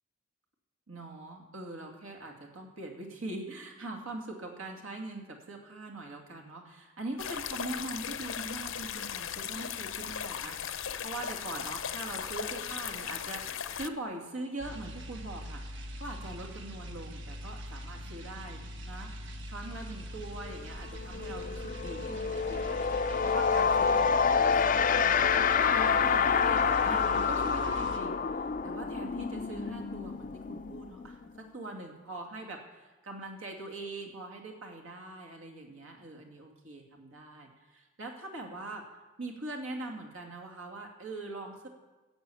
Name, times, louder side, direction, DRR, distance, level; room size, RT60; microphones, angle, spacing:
voice 1, 0.9-15.6 16.0-25.3 25.7-38.8 39.2-41.7, right 2 dB, 85° right, 1 dB, 2.5 m, -42 dB
sound 1, 7.2-13.9, left 8 dB, 80° left, 0.7 m, -37 dB
sound 2, 14.6-28.0, equal, 65° right, 1.2 m, -42 dB
sound 3, 20.5-20.6 20.9-31.5, left 6 dB, 40° left, 0.4 m, -28 dB
13.0 x 7.1 x 8.5 m, 1.2 s
head